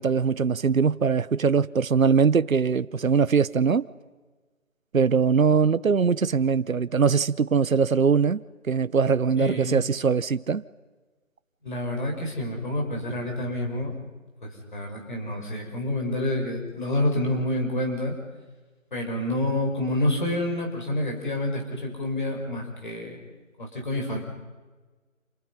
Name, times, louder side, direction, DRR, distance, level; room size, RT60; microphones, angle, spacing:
voice 1, 0.0-3.9 4.9-8.4 8.7-10.6, right 6 dB, 85° right, 0.9 m, -22 dB
voice 2, 9.4-9.8 11.6-14.0 14.4-18.1 18.9-23.2 23.6-24.2, left 1 dB, 35° left, 6.0 m, -28 dB
29.0 x 29.0 x 5.6 m
figure-of-eight pair, 175°, 40 cm